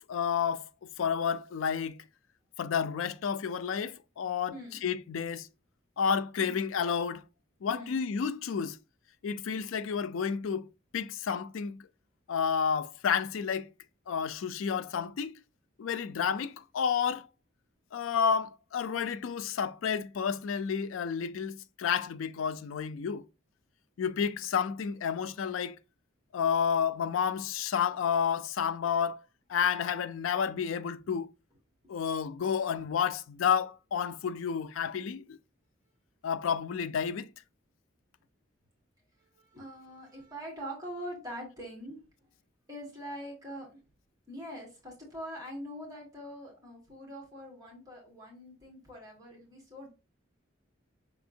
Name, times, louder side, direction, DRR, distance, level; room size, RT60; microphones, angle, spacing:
voice 1, 0.1-2.0 2.6-4.5 4.8-5.5 6.0-7.2 7.6-8.8 9.2-10.7 10.9-11.8 12.3-13.7 14.1-15.3 15.8-17.3 17.9-23.2 24.0-25.7 26.3-29.2 29.5-31.3 31.9-35.4 36.2-37.3, left 7 dB, 80° left, 0.4 m, -30 dB
voice 2, 39.2-42.0 42.7-43.7 44.3-49.9, equal, 20° right, 1.7 m, -43 dB
5.9 x 3.4 x 2.6 m
head